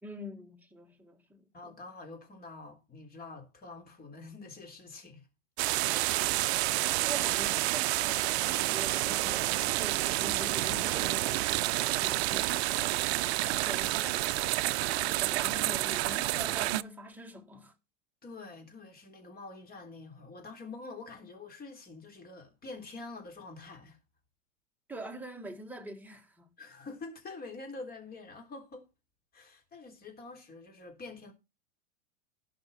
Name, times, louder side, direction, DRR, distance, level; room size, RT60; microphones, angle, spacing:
voice 1, 0.0-1.8 5.9-12.8 13.1-17.7 24.9-26.5, right 1 dB, 5° right, 1.6 m, -45 dB
voice 2, 1.5-5.3 18.2-24.0 26.6-28.9 29.3-31.3, left 3 dB, 25° left, 3.4 m, -46 dB
sound 1, 5.6-16.8, right 17 dB, 55° right, 0.6 m, -29 dB
16.0 x 5.8 x 4.2 m
hypercardioid pair, 100°, 39 cm